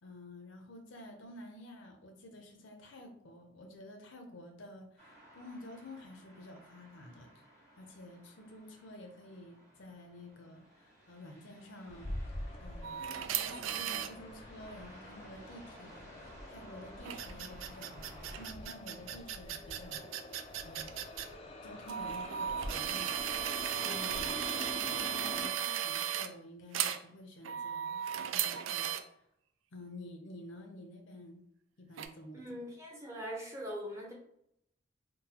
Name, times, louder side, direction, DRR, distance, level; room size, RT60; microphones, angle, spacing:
voice 1, 0.0-7.3 7.8-12.1 12.6-13.2 13.4-18.1 18.4-20.2 20.5-21.0 21.6-24.4 24.8-29.3 29.7-31.4 31.8-32.6, left 1 dB, 70° left, 4 dB, 0.6 m, -51 dB
sound 1, 5.0-18.5, right 1 dB, 35° right, 1.3 m, -57 dB
sound 2, 11.9-25.5, left 1 dB, 30° left, 0.3 m, -45 dB
sound 3, 12.8-14.1 17.0-21.3 21.9-26.3 26.7-27.0 27.4-29.0 32.0-32.1, right 10 dB, 80° right, 0.3 m, -36 dB
voice 2, 32.3-34.1, equal, 15° right, -2 dB, 0.7 m, -42 dB
3.7 x 2.1 x 2.8 m, 0.74 s
head